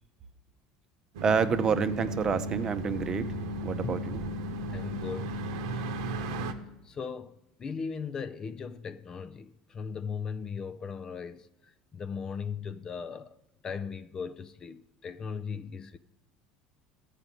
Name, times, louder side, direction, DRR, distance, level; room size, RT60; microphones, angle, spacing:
sound 1, 1.1-6.5, right 1 dB, 85° right, 0.9 m, -35 dB
voice 1, 1.2-3.3 3.6-4.2, right 6 dB, 30° right, 0.7 m, -28 dB
Drum, 3.8-7.8, left 4 dB, 60° left, 1.5 m, -47 dB
voice 2, 4.7-5.3 6.9-7.3 7.6-11.5 11.9-13.3 13.6-16.0, left 6 dB, 30° left, 0.5 m, -37 dB
13.5 x 4.9 x 8.9 m
supercardioid pair, 115°, 2 cm